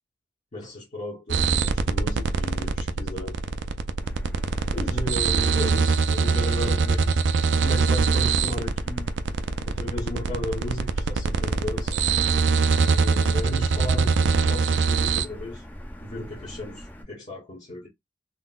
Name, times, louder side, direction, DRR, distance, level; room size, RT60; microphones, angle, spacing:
voice 1, 0.5-3.4 4.7-7.2 7.5-9.1 9.6-12.1 12.7-15.6 16.0-17.9, left 1 dB, 40° left, 0.8 m, -35 dB
sound 1, 1.3-15.2, right 5 dB, 80° right, 0.4 m, -23 dB
Motor vehicle (road), 4.0-17.0, equal, 10° left, 0.6 m, -42 dB
3.7 x 2.0 x 2.3 m
head